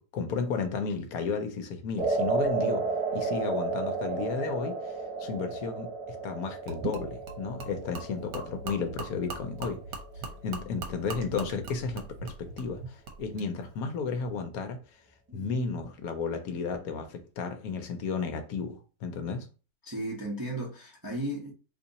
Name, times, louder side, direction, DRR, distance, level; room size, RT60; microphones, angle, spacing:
voice 1, 0.0-4.9 5.2-9.8 10.4-14.8 15.3-19.5, left 5 dB, 70° left, 1.0 m, -33 dB
sound 1, 2.0-10.3, right 4 dB, 5° right, 1.0 m, -33 dB
Gurgling / Liquid, 6.7-13.5, right 3 dB, 70° right, 1.2 m, -40 dB
voice 2, 19.8-21.5, right 1 dB, 25° right, 0.4 m, -35 dB
2.8 x 2.7 x 3.9 m
omnidirectional pair, 1.7 m